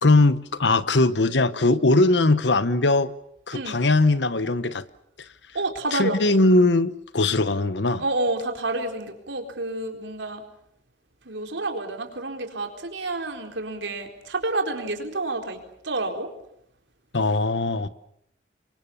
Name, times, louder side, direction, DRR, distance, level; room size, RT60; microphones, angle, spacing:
voice 1, 0.0-3.1 3.5-4.8 5.9-8.0 17.1-17.9, left 2 dB, 75° left, 1.1 m, -20 dB
voice 2, 3.5-3.8 5.5-6.2 8.0-10.4 11.2-16.3, right 2 dB, 85° right, 4.1 m, -29 dB
27.5 x 24.0 x 7.1 m
head